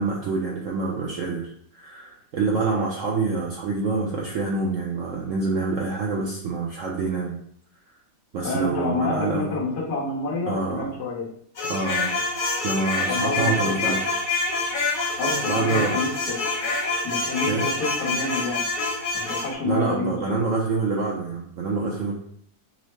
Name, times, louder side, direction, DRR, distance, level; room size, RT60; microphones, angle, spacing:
voice 1, 0.0-7.4 8.3-9.5 10.5-10.9 11.7-12.2 12.6-14.0 15.5-15.9 17.5-17.6 19.6-22.1, right 3 dB, 65° right, -2 dB, 0.8 m, -26 dB
voice 2, 8.4-11.3 13.1-13.5 13.8-13.9 15.2-16.3 17.0-18.6 19.1-20.2, left 3 dB, 70° left, -4 dB, 1.5 m, -28 dB
sound 1, 11.6-19.5, left 3 dB, 40° left, 0.8 m, -26 dB
5.4 x 2.1 x 3.2 m, 0.63 s
omnidirectional pair, 1.8 m